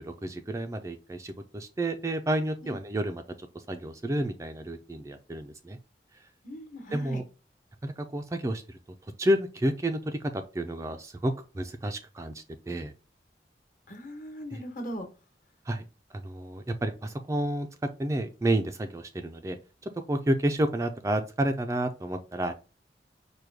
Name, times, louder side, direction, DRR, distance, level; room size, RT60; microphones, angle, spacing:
voice 1, 0.0-5.8 6.9-7.2 7.8-8.8 9.2-12.9 14.5-14.6 15.7-15.8 16.1-17.7 18.0-19.6 19.8-22.5, right 1 dB, 15° right, 7 dB, 0.3 m, -30 dB
voice 2, 6.4-7.2 13.9-15.1, equal, 50° left, 5 dB, 1.1 m, -39 dB
4.9 x 2.2 x 4.5 m, 0.33 s
head